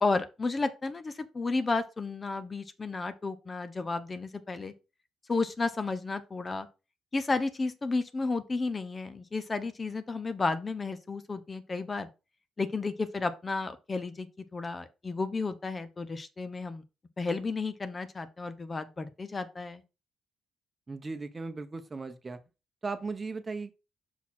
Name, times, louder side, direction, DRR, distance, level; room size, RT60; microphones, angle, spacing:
voice 1, 0.0-4.7 5.3-6.7 7.1-12.1 12.6-16.8 17.2-19.8, left 3 dB, 30° left, 0.7 m, -32 dB
voice 2, 20.9-22.4 22.8-23.7, right 4 dB, 25° right, 0.9 m, -37 dB
6.0 x 4.1 x 4.2 m
cardioid pair, 90°, 0 cm